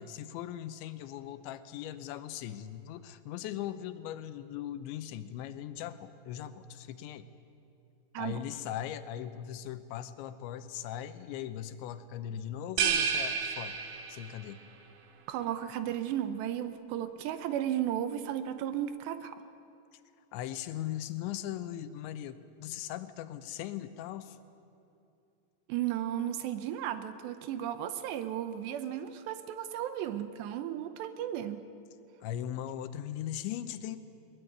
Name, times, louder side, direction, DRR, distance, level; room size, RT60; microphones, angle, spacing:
voice 1, 0.0-7.3 8.2-13.8 14.1-14.6 20.3-24.4 32.2-34.0, left 11 dB, 85° left, 11 dB, 3.2 m, -39 dB
sound 1, 12.8-14.5, right 7 dB, 60° right, 2.5 m, -30 dB
voice 2, 15.3-19.4 25.7-31.7, right 11 dB, 80° right, 11 dB, 2.9 m, -34 dB
21.5 x 21.0 x 9.4 m, 2.6 s
omnidirectional pair, 5.3 m